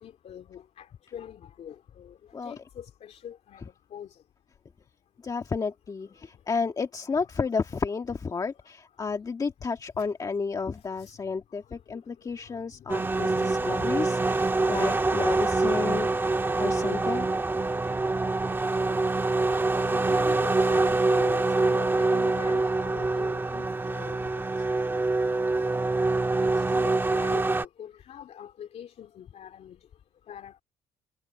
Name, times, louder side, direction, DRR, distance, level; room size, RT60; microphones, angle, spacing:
voice 1, 0.0-2.2 2.4-3.6 3.9-4.2 10.0-10.1 11.0-11.1 12.4-14.0 19.8-24.2 26.4-29.8 30.3-30.6, left 9 dB, 50° left, 2.8 m, -44 dB
voice 2, 5.2-16.3 16.6-17.3, left 5 dB, 25° left, 1.8 m, -32 dB
sound 1, 12.9-27.6, right 3 dB, 15° right, 1.8 m, -25 dB
cardioid pair, 130°, 14 cm